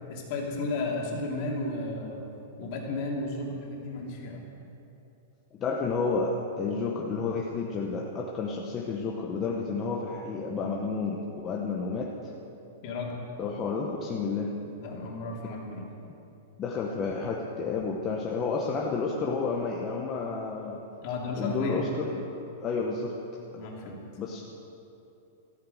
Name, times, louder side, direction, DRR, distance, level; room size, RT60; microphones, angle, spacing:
voice 1, 0.1-2.2 2.6-4.4 12.8-13.1 14.8-15.9 21.0-21.9 23.5-24.0, left 2 dB, 40° left, -1 dB, 2.7 m, -33 dB
voice 2, 5.6-12.3 13.4-14.5 16.6-20.8 21.3-22.3 22.6-23.1 24.2-24.4, left 4 dB, 20° left, -1 dB, 0.9 m, -31 dB
14.0 x 9.5 x 7.9 m, 2.9 s
supercardioid pair, 170°, 0 cm